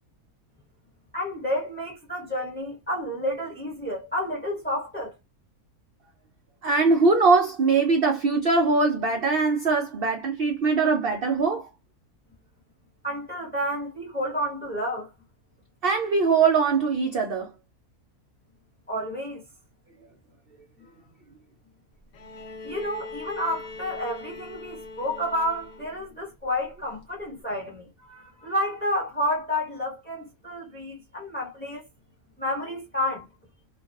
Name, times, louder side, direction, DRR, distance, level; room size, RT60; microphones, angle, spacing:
voice 1, 1.1-5.2 13.0-15.1 18.9-19.4 22.6-31.9 32.4-33.3, left 1 dB, 10° left, 0.6 m, -30 dB
voice 2, 6.6-11.7 15.8-17.5, right 4 dB, 80° right, 0.5 m, -22 dB
Bowed string instrument, 22.1-26.2 27.4-27.5, left 3 dB, 55° left, 1.0 m, -41 dB
2.5 x 2.2 x 2.2 m
omnidirectional pair, 1.6 m